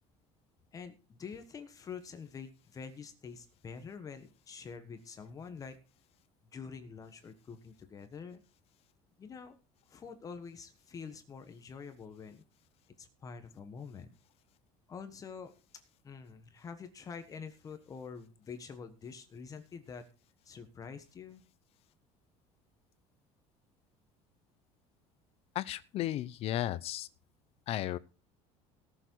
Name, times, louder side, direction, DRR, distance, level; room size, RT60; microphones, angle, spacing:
voice 1, 0.7-5.8 6.5-8.4 9.2-9.6 9.9-12.4 13.0-14.1 14.9-15.5 16.0-20.1 20.4-21.4, left 6 dB, 25° left, 8 dB, 1.3 m, -46 dB
voice 2, 25.5-27.1 27.7-28.0, left 13 dB, 45° left, 17 dB, 0.7 m, -34 dB
18.0 x 7.1 x 4.6 m, 0.34 s
cardioid pair, 155°, 14 cm